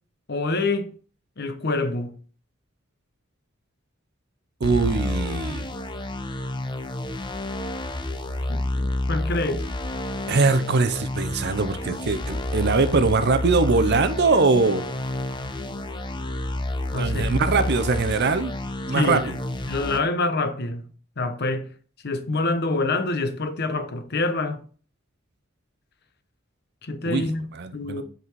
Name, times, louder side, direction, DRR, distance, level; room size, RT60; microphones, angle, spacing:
voice 1, 0.3-0.9 1.4-2.1 8.5-9.7 16.9-17.4 18.9-19.4 19.7-20.9 21.2-21.7 22.0-24.6 26.8-27.4 27.7-28.0, left 2 dB, 55° left, 0.9 m, -26 dB
sound 1, 4.6-20.0, left 1 dB, 25° left, 0.7 m, -29 dB
voice 2, 4.6-5.7 10.3-14.9 16.9-18.6 18.9-19.3 27.0-28.0, right 4 dB, 55° right, 0.6 m, -22 dB
8.3 x 4.1 x 4.6 m
head